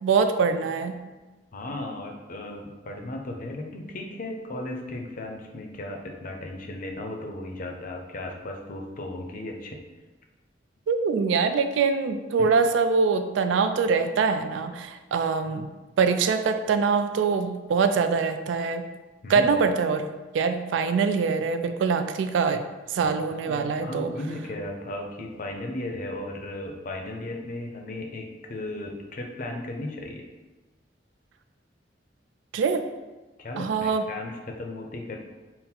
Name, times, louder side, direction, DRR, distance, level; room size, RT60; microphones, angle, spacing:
voice 1, 0.0-1.0 10.9-15.7 16.0-18.9 19.3-20.1 20.3-22.6 22.9-24.1 32.5-32.8 33.6-34.0, right 5 dB, 85° right, 8 dB, 0.3 m, -24 dB
voice 2, 1.5-9.8 12.4-12.5 19.2-19.5 23.0-30.2 33.4-35.3, left 1 dB, 50° left, 2 dB, 0.5 m, -36 dB
3.8 x 2.1 x 4.3 m, 1.2 s
head